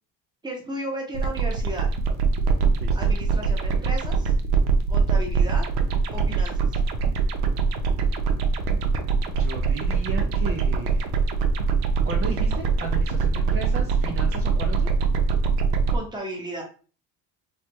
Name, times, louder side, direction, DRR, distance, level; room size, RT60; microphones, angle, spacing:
voice 1, 0.4-1.9 2.9-4.3 4.9-5.7 6.1-6.8 15.9-16.6, right 1 dB, 10° right, -1 dB, 1.0 m, -34 dB
sound 1, 1.1-16.0, right 5 dB, 80° right, 0.6 m, -23 dB
voice 2, 2.7-3.1 9.4-11.2 12.1-14.9, right 4 dB, 35° right, 1 dB, 0.5 m, -35 dB
3.2 x 2.2 x 2.9 m, 0.37 s
cardioid pair, 115°, 38 cm